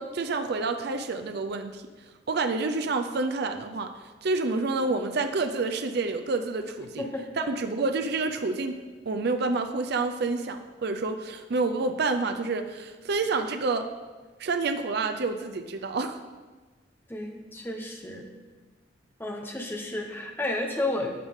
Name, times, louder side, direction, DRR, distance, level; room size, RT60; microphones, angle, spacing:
voice 1, 0.0-1.8 2.3-3.9 4.2-7.1 7.4-8.7 9.1-13.9 14.4-16.2, right 3 dB, 60° right, 7 dB, 0.5 m, -28 dB
voice 2, 7.0-7.5 17.1-18.3 19.2-21.1, left 2 dB, 10° left, 2 dB, 1.0 m, -32 dB
11.5 x 6.3 x 3.7 m, 1.3 s
head